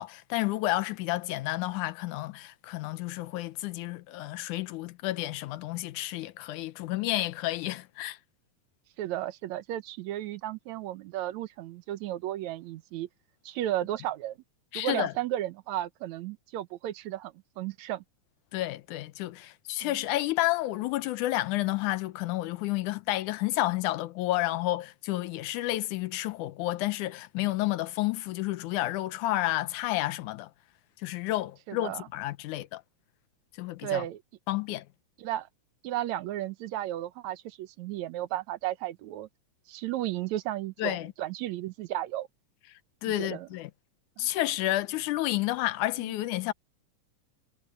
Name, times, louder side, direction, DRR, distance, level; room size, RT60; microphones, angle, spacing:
voice 1, 0.0-8.2 14.7-15.1 18.5-30.5 31.0-32.8 33.6-34.0 34.5-34.9 40.8-41.1 43.0-43.7 44.2-46.5, left 16 dB, 80° left, 2.2 m, -30 dB
voice 2, 9.0-13.1 13.5-14.4 14.8-18.0 19.8-20.0 31.7-32.0 33.8-34.2 35.2-35.5 35.8-39.3 39.7-42.3 43.1-43.5 44.2-44.3 46.0-46.1, right 13 dB, 70° right, 2.1 m, -34 dB
omnidirectional pair, 3.6 m